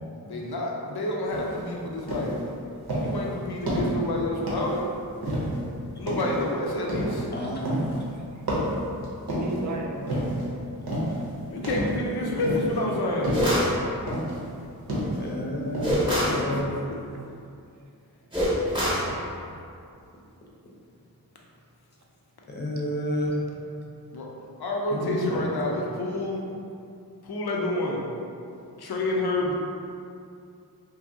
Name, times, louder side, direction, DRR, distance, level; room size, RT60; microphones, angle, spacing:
voice 1, 0.3-2.4 3.0-4.9 5.9-7.2 11.5-13.4 16.2-16.4 24.1-24.3 24.6-26.4 27.2-28.0 28.8-29.5, left 1 dB, 85° left, -1 dB, 0.5 m, -28 dB
sound 1, 1.3-1.6 2.1-2.4 2.9-3.2 3.7-4.0 4.5-4.8 5.2-5.6 6.1-6.4 6.9-7.3 7.7-8.0 8.5-9.6 10.1-10.4 10.9-11.2 11.6-12.1 12.4-12.8 13.2-13.6 14.1-14.4 14.9-15.3 15.7-15.9, equal, 85° right, 0.7 m, -29 dB
voice 2, 7.3-8.0 12.2-12.8 15.1-16.7 22.5-23.4 24.9-25.4, equal, 30° left, -3 dB, 0.5 m, -31 dB
voice 3, 9.3-10.2 18.4-18.5 19.0-19.2 28.4-28.9, right 2 dB, 50° right, 0 dB, 0.4 m, -36 dB
sound 2, 13.3-13.8 15.8-16.4 18.3-19.1, equal, 15° right, 0.8 m, -24 dB
2.6 x 2.6 x 2.6 m, 2.5 s
wide cardioid pair, 50°, 37 cm